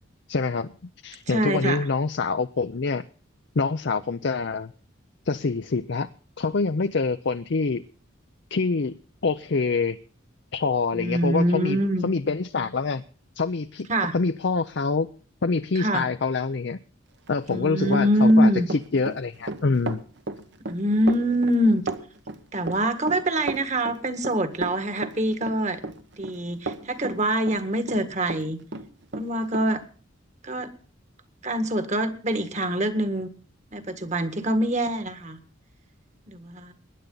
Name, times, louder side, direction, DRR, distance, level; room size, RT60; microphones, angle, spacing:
voice 1, 0.3-0.7 1.0-3.0 3.6-4.7 5.3-6.1 6.4-7.8 8.5-10.0 10.5-13.0 13.4-13.9 14.1-15.1 15.4-16.8 17.3-20.0, left 4 dB, 55° left, 9 dB, 0.6 m, -26 dB
voice 2, 1.3-1.8 10.9-12.1 13.9-14.1 15.8-16.1 17.5-18.7 20.7-21.8 22.5-25.8 26.2-28.6 29.1-29.8 30.4-30.7 31.4-33.3 33.7-35.4 36.3-36.7, equal, 35° right, 9 dB, 1.7 m, -24 dB
Run, 17.3-28.5 28.7-29.7, right 3 dB, 55° right, 1.2 m, -34 dB
20.5 x 10.5 x 3.9 m, 0.38 s
head